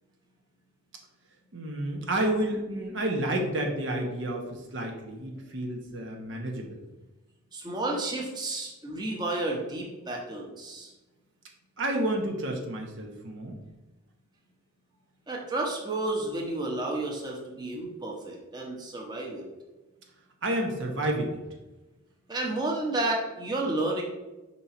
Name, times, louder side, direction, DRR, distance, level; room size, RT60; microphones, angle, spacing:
voice 1, 1.5-6.8 11.8-13.6 20.4-21.4, right 1 dB, 60° right, 2 dB, 1.0 m, -30 dB
voice 2, 7.5-10.9 15.3-19.4 22.3-24.0, right 2 dB, 20° right, -1 dB, 1.0 m, -31 dB
5.5 x 4.4 x 4.3 m, 1.1 s
head